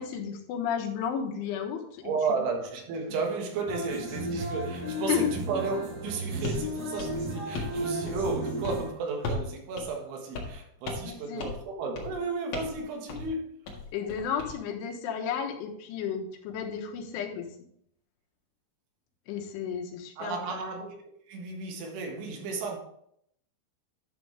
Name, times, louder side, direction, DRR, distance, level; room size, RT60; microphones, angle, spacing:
voice 1, 0.0-2.0 2.3-2.4 5.0-5.3 11.0-11.5 13.9-17.5 19.3-20.6, left 8 dB, 80° left, 3.5 m, -33 dB
voice 2, 2.0-13.5 20.2-21.0 21.3-22.8, right 4 dB, 75° right, 3.8 m, -33 dB
sound 1, 3.7-8.9, right 1 dB, 40° right, 3.3 m, -34 dB
sound 2, 6.4-6.7 7.0-7.8 8.1-8.4 8.6-8.8 9.2-9.5 9.8-9.9 10.3-10.6 10.9-11.1 11.4-11.7 12.0-12.2 12.5-12.8 13.1-13.3 13.7-14.5, left 3 dB, 55° left, 2.6 m, -35 dB
11.0 x 6.9 x 3.3 m
omnidirectional pair, 5.7 m